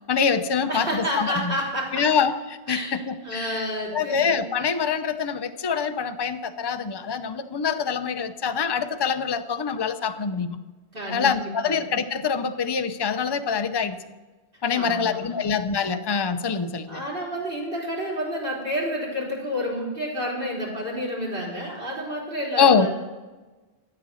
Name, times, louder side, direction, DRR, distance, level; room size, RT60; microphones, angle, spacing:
voice 1, 0.1-1.5 1.9-3.7 3.9-10.6 11.1-14.0 14.6-17.0 22.6-22.9, left 6 dB, 30° left, 9 dB, 0.6 m, -25 dB
voice 2, 0.7-2.0 2.7-4.4 10.9-11.8 14.7-15.5 16.9-22.9, equal, 60° right, -4 dB, 4.2 m, -30 dB
13.5 x 8.9 x 6.3 m, 1.2 s
omnidirectional pair, 1.0 m